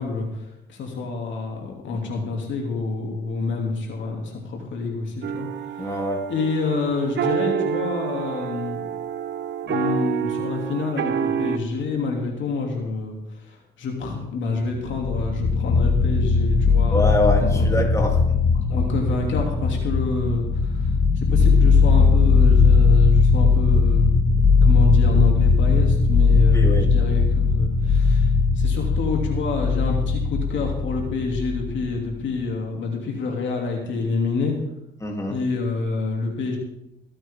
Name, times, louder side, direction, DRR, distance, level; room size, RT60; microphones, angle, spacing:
voice 1, 0.0-5.5 5.7-5.9 6.3-8.8 9.6-17.1 17.4-18.0 18.5-24.1 24.6-34.5 35.3-36.6, left 4 dB, 70° left, 1 dB, 3.0 m, -28 dB
sound 1, 5.2-11.6, right 9 dB, 60° right, 1.1 m, -28 dB
voice 2, 5.8-6.2 16.9-18.4 26.5-26.9 35.0-35.4, left 1 dB, 15° left, 0 dB, 3.3 m, -25 dB
sound 2, 14.7-32.1, left 4 dB, 45° left, 2.1 m, -18 dB
22.5 x 8.9 x 3.8 m, 0.84 s
cardioid pair, 90°, 20 cm